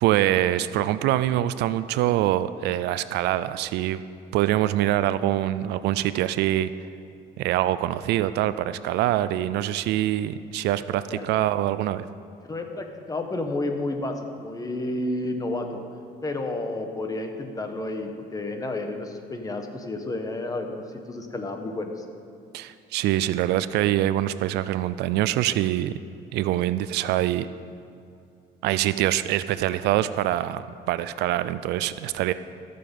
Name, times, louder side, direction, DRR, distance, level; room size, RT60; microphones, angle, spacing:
voice 1, 0.0-4.0 4.3-6.7 7.4-12.1 22.5-26.0 26.3-27.5 28.6-32.3, right 13 dB, 80° right, 14 dB, 0.4 m, -24 dB
voice 2, 12.5-15.8 16.2-22.0, left 2 dB, 20° left, 5 dB, 1.2 m, -31 dB
15.5 x 6.8 x 5.4 m, 2.6 s
cardioid pair, 110°, 17 cm